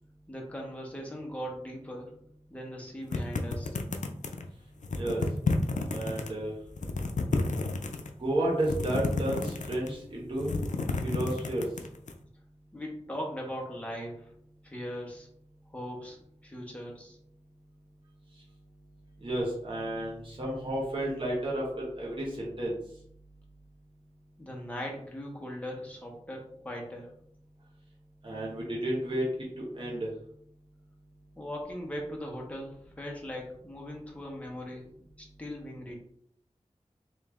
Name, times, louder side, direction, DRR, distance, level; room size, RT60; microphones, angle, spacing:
voice 1, 0.3-2.1 2.5-3.8 12.7-14.3 14.6-15.3 15.7-16.2 16.4-17.2 24.4-27.1 31.4-34.8 35.2-36.0, equal, 10° left, -2 dB, 1.0 m, -39 dB
sound 1, 3.1-4.5 4.8-6.3 6.7-8.1 8.6-10.0 10.3-12.1, left 3 dB, 85° left, 0.4 m, -31 dB
voice 2, 5.9-6.5 8.2-10.5 11.0-11.7 19.2-22.8 28.2-30.1, right 1 dB, 45° right, -5 dB, 1.1 m, -32 dB
3.2 x 2.7 x 3.5 m, 0.67 s
wide cardioid pair, 80°, 12 cm